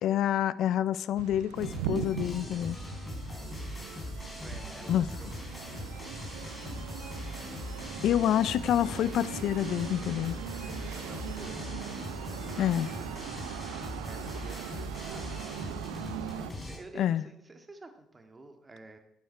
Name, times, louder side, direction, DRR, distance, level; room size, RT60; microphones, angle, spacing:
voice 1, 0.0-2.8 4.9-5.1 8.0-10.4 12.6-12.9 17.0-17.2, left 11 dB, 60° left, 18 dB, 0.4 m, -27 dB
sound 1, 1.1-16.5, right 12 dB, 75° right, 0.5 m, -41 dB
sound 2, 1.5-16.8, left 1 dB, 25° left, 4.3 m, -40 dB
voice 2, 3.2-3.6 4.4-5.7 10.9-11.7 12.4-13.1 13.7-15.7 16.7-19.0, right 2 dB, 25° right, 5 dB, 2.0 m, -51 dB
11.5 x 9.3 x 4.7 m, 0.78 s
hypercardioid pair, 50°, 0 cm